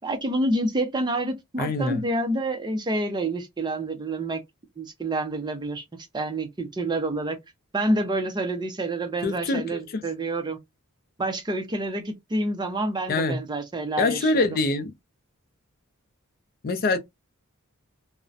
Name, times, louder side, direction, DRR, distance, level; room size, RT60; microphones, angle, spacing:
voice 1, 0.0-4.4 4.8-5.8 6.1-7.4 7.7-10.6 11.2-14.5, right 1 dB, 20° right, 0.5 m, -28 dB
voice 2, 1.6-2.0 9.2-9.8 13.1-13.4 14.0-14.9 16.6-17.0, left 3 dB, 45° left, 0.4 m, -24 dB
2.4 x 2.0 x 2.5 m
head